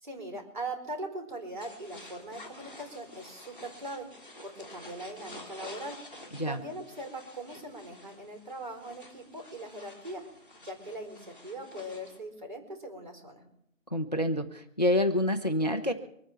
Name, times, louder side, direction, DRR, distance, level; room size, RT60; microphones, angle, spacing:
voice 1, 0.0-6.0 6.5-10.2 10.6-13.5, right 1 dB, 35° right, 3 dB, 4.6 m, -41 dB
sound 1, 1.6-12.2, left 1 dB, 5° right, 1.9 m, -50 dB
voice 2, 13.9-15.9, left 1 dB, 30° left, 8 dB, 0.8 m, -27 dB
25.0 x 9.3 x 4.4 m, 0.73 s
figure-of-eight pair, 175°, 41 cm